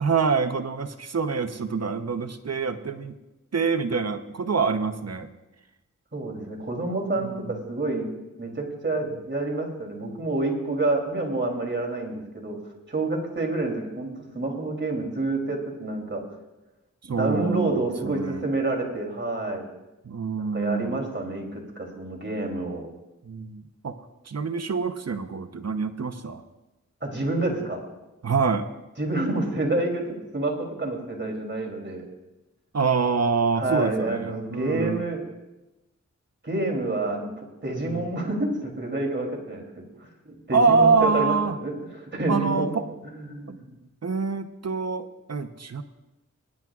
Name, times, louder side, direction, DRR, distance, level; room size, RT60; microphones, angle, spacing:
voice 1, 0.0-3.1 3.5-5.3 6.4-6.5 7.2-7.6 17.1-18.5 20.0-21.0 23.2-24.0 24.3-26.4 28.2-28.7 32.7-35.0 37.8-38.1 40.5-41.6 42.3-42.9 43.5-43.6 44.0-45.8, right 5 dB, 55° right, 9 dB, 0.9 m, -26 dB
voice 2, 6.1-8.1 8.4-12.6 12.9-16.2 17.0-19.7 20.4-22.9 27.0-27.8 29.0-30.0 30.3-32.0 33.6-35.2 36.4-41.3 41.6-42.7 43.1-43.8, right 2 dB, 35° right, 0 dB, 3.2 m, -28 dB
22.5 x 10.5 x 2.4 m, 1.0 s
cardioid pair, 50°, 31 cm